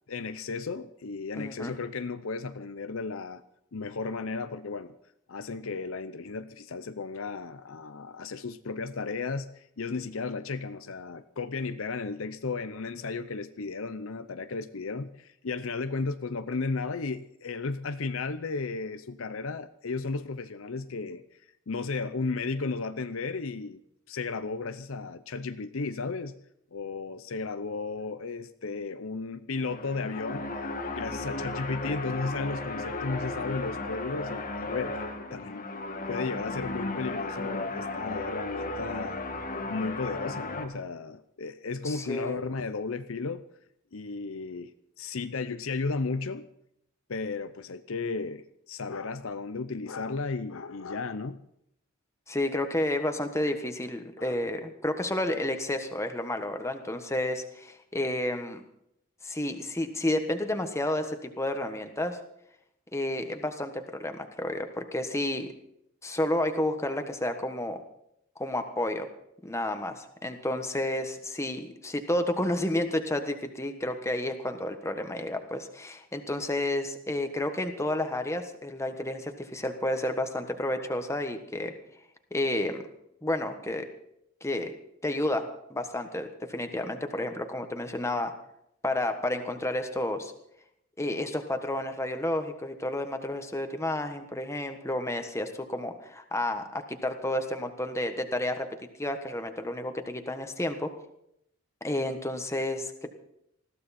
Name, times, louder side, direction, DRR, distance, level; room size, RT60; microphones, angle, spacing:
voice 1, 0.1-3.4 3.7-4.9 5.3-21.2 21.7-23.8 24.1-26.3 26.7-30.5 30.9-35.0 35.3-35.7 36.1-39.2 39.7-43.4 43.9-46.5 47.1-51.4 54.2-54.4, left 4 dB, 65° left, 11 dB, 0.7 m, -34 dB
voice 2, 1.4-1.7 41.8-42.4 52.3-58.6 59.2-62.2 62.9-65.5 66.0-67.8 68.4-69.1 69.4-81.7 82.3-82.8 83.2-83.9 84.4-84.7 85.0-85.4 85.7-88.3 88.8-90.3 91.0-98.7 99.0-100.9 101.8-103.1, left 1 dB, 15° left, 6 dB, 1.4 m, -31 dB
sound 1, 29.5-40.6, left 2 dB, 40° left, 1.7 m, -35 dB
20.5 x 15.0 x 4.3 m, 0.75 s
head